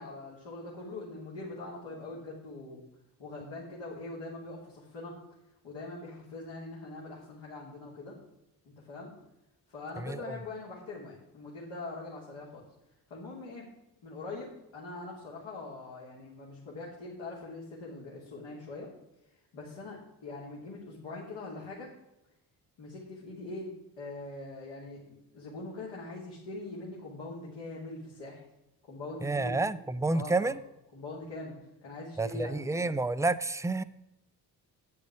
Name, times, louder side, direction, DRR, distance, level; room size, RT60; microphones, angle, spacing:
voice 1, 0.0-2.8 3.2-5.2 5.6-8.1 8.6-9.1 9.7-12.6 13.1-13.7 14.0-18.9 19.5-21.9 22.8-23.7 24.0-28.4 28.9-29.6 30.1-30.6 30.9-31.5 31.8-32.9, left 2 dB, 70° left, -6 dB, 2.8 m, -42 dB
voice 2, 10.0-10.4 29.2-30.6 32.2-33.8, right 3 dB, 5° right, 14 dB, 0.4 m, -29 dB
9.1 x 8.4 x 4.9 m, 0.93 s
hypercardioid pair, 50°, 47 cm